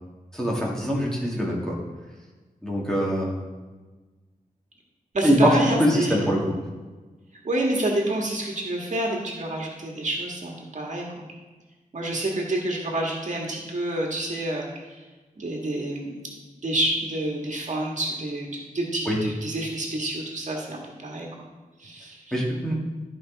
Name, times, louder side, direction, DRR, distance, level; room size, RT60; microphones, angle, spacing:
voice 1, 0.3-1.8 2.6-3.4 5.2-5.5 5.8-6.4 19.1-19.2 22.3-22.7, equal, 5° left, -4 dB, 2.1 m, -23 dB
voice 2, 5.1-6.3 7.4-11.3 11.9-15.0 15.4-16.2 16.6-21.5 21.8-22.4, right 1 dB, 55° right, -1 dB, 1.7 m, -28 dB
13.0 x 5.4 x 4.0 m, 1.3 s
wide cardioid pair, 120°, 15 cm